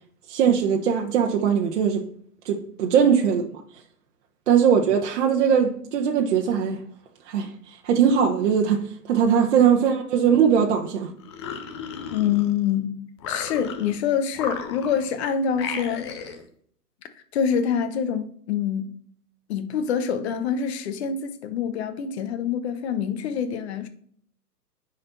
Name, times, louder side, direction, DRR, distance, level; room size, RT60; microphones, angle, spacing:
voice 1, 0.3-2.0 2.4-3.6 4.5-6.8 7.3-11.1, right 7 dB, 45° right, 1.1 m, -20 dB
sound 1, 11.2-12.7 13.2-14.0 14.3-15.1 15.5-16.4, left 6 dB, 20° left, 0.5 m, -34 dB
voice 2, 12.1-16.1 17.1-18.9 19.5-23.9, left 7 dB, 40° left, 1.1 m, -26 dB
9.7 x 4.3 x 4.0 m
hypercardioid pair, 130°, 48 cm